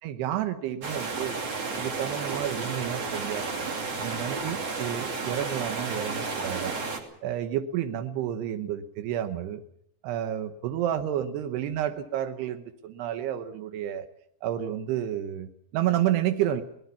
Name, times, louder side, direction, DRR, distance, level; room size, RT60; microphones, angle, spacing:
voice 1, 0.0-1.4 1.8-3.5 4.0-6.8 7.2-9.6 10.0-14.1 14.4-16.6, right 11 dB, 85° right, 9 dB, 3.0 m, -30 dB
sound 1, 0.8-7.0, right 4 dB, 40° right, 3.8 m, -32 dB
23.5 x 19.0 x 7.1 m, 0.74 s
omnidirectional pair, 4.6 m